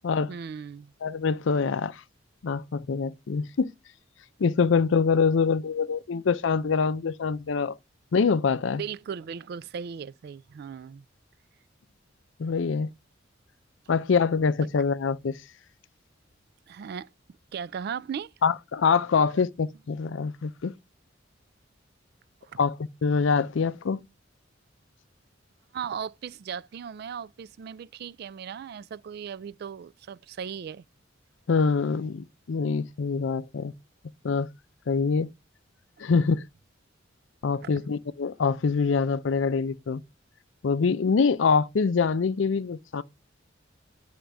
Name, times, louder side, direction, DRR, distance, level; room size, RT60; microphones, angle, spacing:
voice 1, 0.3-0.9 8.8-11.0 16.7-17.1 17.5-18.3 22.4-22.6 25.7-30.8 37.6-37.9, right 7 dB, 55° right, 0.3 m, -37 dB
voice 2, 1.0-2.0 2.4-3.7 4.4-7.8 8.1-8.8 12.4-12.9 13.9-15.4 18.4-20.7 22.6-22.8 23.0-24.0 31.5-33.7 34.2-34.5 34.9-35.3 36.0-36.4 37.4-40.0 40.6-43.0, left 5 dB, 70° left, 0.5 m, -25 dB
10.0 x 5.1 x 3.4 m
head